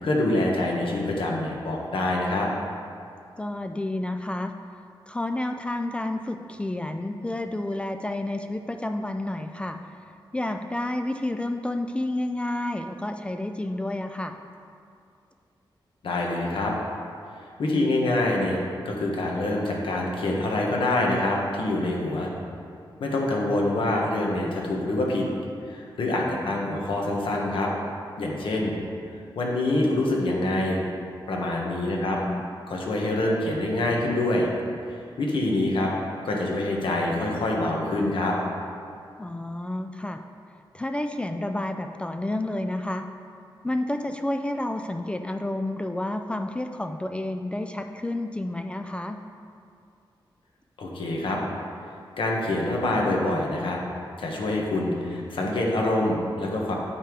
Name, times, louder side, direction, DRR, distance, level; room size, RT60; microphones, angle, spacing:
voice 1, 0.0-2.5 16.0-16.7 17.6-22.3 23.0-25.3 25.6-27.7 28.2-28.7 29.3-30.8 31.3-32.2 32.7-34.5 34.9-35.9 36.2-38.4 50.8-51.4 52.2-53.8 54.2-56.7, left 2 dB, 80° left, -1 dB, 1.4 m, -25 dB
voice 2, 3.4-4.5 5.1-9.9 10.3-14.4 26.4-26.5 31.9-32.4 39.2-40.2 40.7-43.1 43.6-49.2, left 1 dB, 15° left, 6 dB, 0.3 m, -30 dB
8.8 x 5.7 x 4.8 m, 2.4 s
wide cardioid pair, 130°, 9 cm